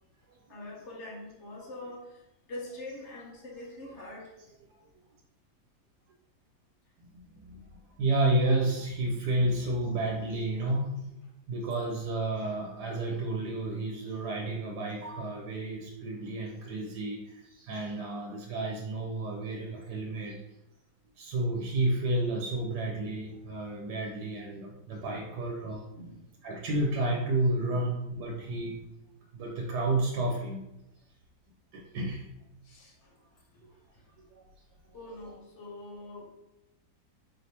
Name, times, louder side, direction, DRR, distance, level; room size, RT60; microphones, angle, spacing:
voice 1, 0.5-4.3 24.5-24.6 25.1-25.3 25.9-26.3 27.7-27.9 28.6-28.8 32.6-33.2 33.5-33.6 33.9-34.0 34.9-36.3, left 1 dB, 55° left, -1 dB, 1.0 m, -44 dB
voice 2, 7.1-7.6 8.0-11.1 11.5-20.4 21.2-25.9 26.4-28.9 29.3-30.7 31.7-32.3 34.3-34.5, right 2 dB, 85° right, 0 dB, 1.2 m, -31 dB
4.3 x 3.2 x 2.8 m, 0.90 s
omnidirectional pair, 1.7 m